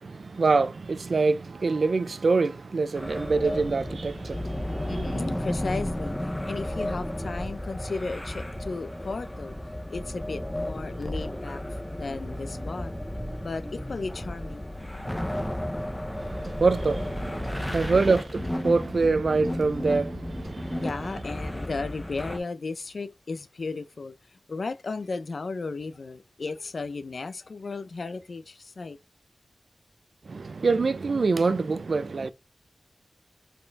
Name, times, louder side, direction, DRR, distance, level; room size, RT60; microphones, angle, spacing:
voice 1, 0.0-5.3 16.1-20.8 30.3-32.3, right 4 dB, 60° right, 0.5 m, -25 dB
sound 1, 2.9-22.4, left 1 dB, 5° left, 1.0 m, -33 dB
voice 2, 4.9-9.5 9.9-11.6 11.9-13.0 13.4-14.7 17.5-18.0 20.8-29.0, left 3 dB, 60° left, 0.7 m, -35 dB
5.5 x 4.4 x 4.0 m
wide cardioid pair, 110°, 0 cm